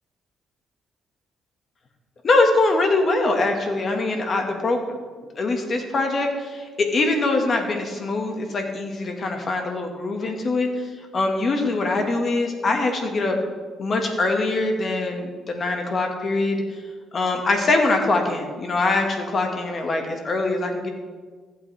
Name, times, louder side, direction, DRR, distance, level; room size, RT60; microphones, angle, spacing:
voice 1, 2.2-5.0 5.4-13.4 13.8-16.6 17.1-20.9, left 2 dB, 45° left, 3 dB, 1.7 m, -23 dB
14.5 x 8.4 x 3.4 m, 1.5 s
cardioid pair, 90°, 0 cm